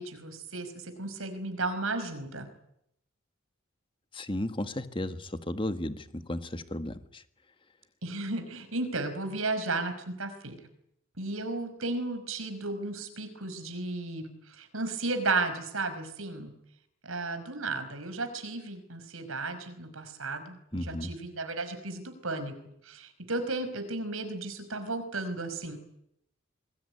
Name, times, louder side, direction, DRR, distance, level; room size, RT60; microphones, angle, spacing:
voice 1, 0.0-2.5 8.0-10.6 11.2-16.5 17.0-22.5 22.8-25.8, right 3 dB, 85° right, 9 dB, 5.3 m, -34 dB
voice 2, 4.1-7.2 20.7-21.1, left 1 dB, 25° left, 10 dB, 1.6 m, -34 dB
26.0 x 21.0 x 10.0 m, 0.77 s
head